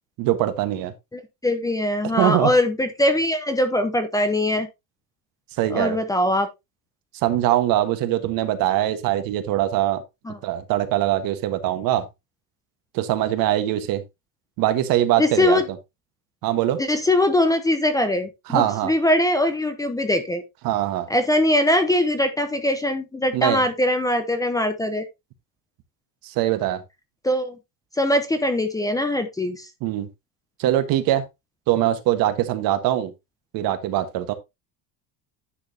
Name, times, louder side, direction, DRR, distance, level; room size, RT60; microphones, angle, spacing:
voice 1, 0.2-0.9 2.2-2.5 5.6-6.0 7.2-10.0 10.4-12.0 12.9-14.0 14.6-15.6 16.4-16.8 18.5-18.9 20.6-21.1 23.3-23.6 26.2-26.8 29.8-30.1 30.6-31.2 31.7-33.1 33.5-34.3, right 13 dB, 60° right, 1.4 m, -22 dB
voice 2, 1.1-4.7 5.7-6.5 10.3-10.4 15.2-15.6 16.8-20.4 21.1-25.1 27.2-27.6 27.9-29.7, left 1 dB, 10° left, 0.7 m, -22 dB
10.0 x 6.3 x 2.8 m
cardioid pair, 155°, 40 cm